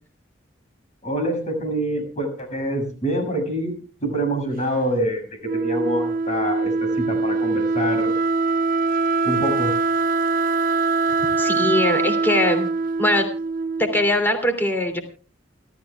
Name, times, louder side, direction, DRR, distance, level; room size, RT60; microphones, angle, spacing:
voice 1, 1.0-3.7 4.0-5.2 5.5-8.1 9.2-9.7, right 1 dB, 40° left, 4 dB, 6.9 m, -25 dB
Wind instrument woodwind instrument, 5.4-14.2, right 4 dB, 45° right, 0.6 m, -23 dB
voice 2, 11.4-12.7 13.0-13.3 13.8-15.0, left 1 dB, 10° left, 5 dB, 2.9 m, -21 dB
29.0 x 13.5 x 2.4 m, 0.37 s
head